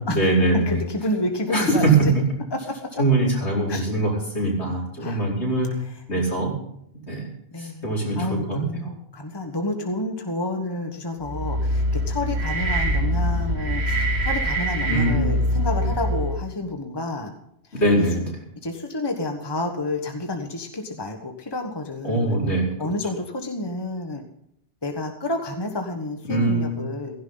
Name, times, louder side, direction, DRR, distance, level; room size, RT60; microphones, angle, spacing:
voice 1, 0.0-0.8 1.5-1.9 3.0-5.7 6.1-6.5 7.1-7.3 7.6-8.9 14.8-15.3 17.7-18.3 22.0-22.7 26.2-26.7, right 1 dB, 70° left, -3 dB, 5.3 m, -22 dB
voice 2, 0.7-2.1 2.5-3.0 3.7-3.8 5.0-5.2 7.5-17.3 17.7-18.1 18.6-22.4 22.8-24.2 24.8-27.1, left 2 dB, 20° left, 4 dB, 1.4 m, -30 dB
sound 1, 11.2-16.5, equal, 65° right, 2.3 m, -24 dB
16.5 x 15.5 x 4.0 m, 0.73 s
omnidirectional pair, 1.2 m